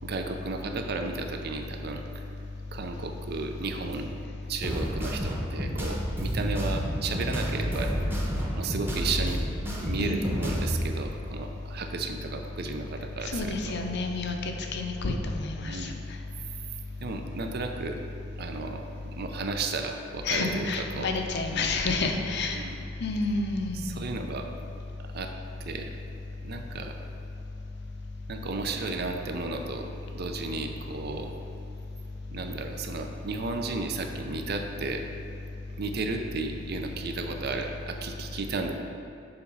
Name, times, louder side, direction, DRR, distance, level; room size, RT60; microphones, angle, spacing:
voice 1, 0.0-2.2 2.7-4.2 4.5-7.9 8.6-9.4 9.8-13.5 15.6-16.0 17.0-18.0 18.4-20.7 20.9-21.1 21.5-21.7 22.5-22.8 23.7-24.5 25.1-25.3 25.7-25.9 26.4-26.9 28.3-29.9 30.1-31.3 32.3-35.0 35.8-38.7, right 3 dB, 55° right, 4 dB, 0.5 m, -33 dB
sound 1, 4.6-10.8, equal, 10° right, 0.9 m, -30 dB
voice 2, 10.0-10.4 13.2-15.9 20.2-22.6 23.0-23.9, left 3 dB, 60° left, 3 dB, 0.7 m, -29 dB
6.9 x 4.1 x 5.4 m, 2.7 s
head